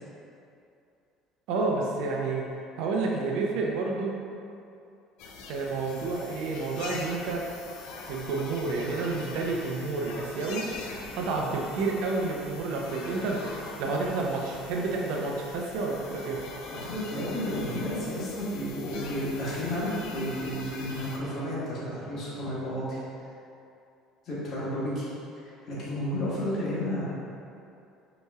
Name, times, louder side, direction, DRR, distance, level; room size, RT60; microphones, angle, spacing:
voice 1, 1.5-2.4 2.8-4.1 5.5-7.5 8.1-10.7 11.1-16.4, right 3 dB, 75° right, -1 dB, 0.6 m, -30 dB
sound 1, 5.2-21.2, left 3 dB, 85° left, 0.4 m, -43 dB
voice 2, 16.7-23.0 24.2-25.1 25.7-27.0, equal, 45° left, -9 dB, 1.4 m, -32 dB
5.4 x 3.0 x 2.4 m, 2.6 s
cardioid pair, 125°, 0 cm